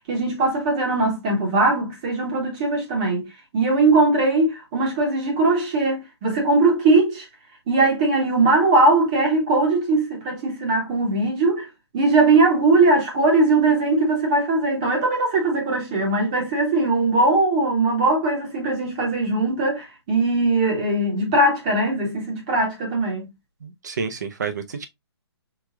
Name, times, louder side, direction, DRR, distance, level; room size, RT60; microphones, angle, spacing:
voice 1, 0.1-3.3 3.5-7.3 7.7-11.7 11.9-23.3, right 2 dB, 15° right, 0.9 m, -20 dB
voice 2, 23.6-24.9, right 5 dB, 40° right, 0.6 m, -29 dB
4.8 x 2.3 x 3.5 m
hypercardioid pair, 180°, 14 cm